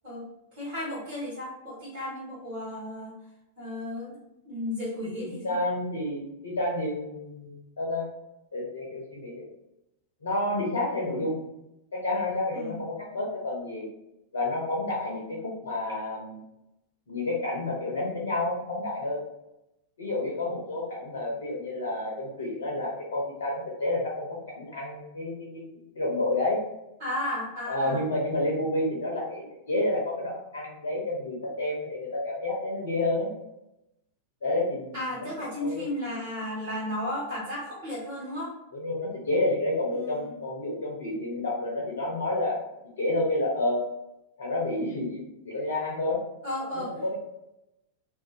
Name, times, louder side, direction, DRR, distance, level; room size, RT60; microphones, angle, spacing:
voice 1, 0.6-3.1 3.6-4.2 4.4-5.6 11.1-11.2 12.5-12.8 27.0-28.0 34.9-38.5 39.9-40.4 46.4-46.9, left 1 dB, 45° right, -8 dB, 1.4 m, -34 dB
voice 2, 5.2-8.1 8.5-9.5 10.2-11.4 11.9-13.9 14.3-16.4 17.1-19.2 20.0-26.6 27.7-33.3 34.4-35.3 35.6-35.8 38.7-42.6 43.0-43.8 44.4-46.2 46.9-47.2, left 2 dB, 70° left, -2 dB, 0.6 m, -30 dB
2.5 x 2.4 x 2.4 m, 0.88 s
figure-of-eight pair, 90°, 0 cm